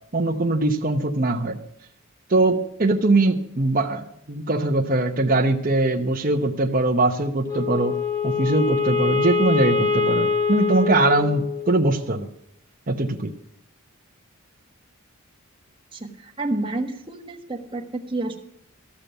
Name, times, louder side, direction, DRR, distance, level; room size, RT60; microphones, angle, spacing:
voice 1, 0.1-1.6 2.3-8.0 8.2-12.3 12.9-13.3, right 2 dB, 40° right, 2 dB, 0.9 m, -21 dB
Wind instrument woodwind instrument, 7.4-11.9, left 5 dB, 15° left, 0.9 m, -24 dB
voice 2, 15.9-18.4, right 2 dB, 25° right, 2 dB, 1.3 m, -29 dB
14.5 x 6.8 x 9.0 m, 0.74 s
head